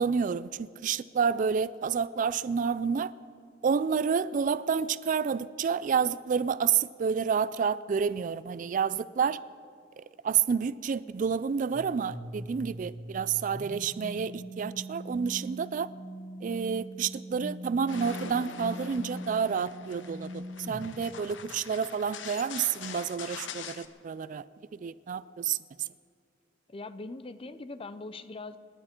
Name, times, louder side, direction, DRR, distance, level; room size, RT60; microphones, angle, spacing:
voice 1, 0.0-3.1 3.6-9.4 10.0-15.9 16.4-24.4 24.7-25.9, right 6 dB, 45° right, 17 dB, 0.3 m, -29 dB
sound 1, 11.7-21.0, equal, 85° right, 3.4 m, -41 dB
sound 2, 17.9-23.9, left 6 dB, 75° left, 0.8 m, -44 dB
voice 2, 26.7-28.6, left 3 dB, 30° left, 13 dB, 0.6 m, -41 dB
27.0 x 11.0 x 4.4 m, 2.3 s
head